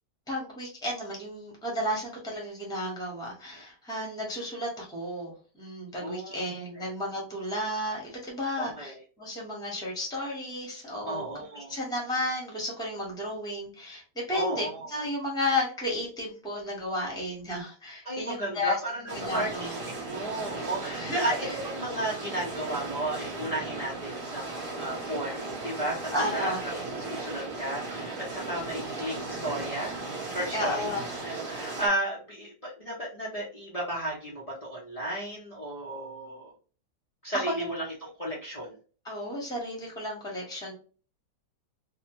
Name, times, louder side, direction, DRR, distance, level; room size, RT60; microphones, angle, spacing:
voice 1, 0.3-11.3 11.5-18.8 19.1-19.7 21.0-21.5 26.1-26.6 30.5-31.0 37.3-37.7 39.0-40.7, left 1 dB, 5° left, -2 dB, 0.5 m, -33 dB
voice 2, 6.0-6.4 6.8-6.9 8.6-9.0 11.1-11.7 14.3-14.9 18.0-19.7 20.0-24.4 24.7-26.5 26.9-30.0 30.3-30.9 31.2-36.5 37.2-38.8, right 1 dB, 80° left, -5 dB, 0.3 m, -34 dB
sound 1, 19.1-31.9, right 3 dB, 45° right, 1.0 m, -36 dB
2.8 x 2.1 x 2.8 m, 0.38 s
omnidirectional pair, 1.8 m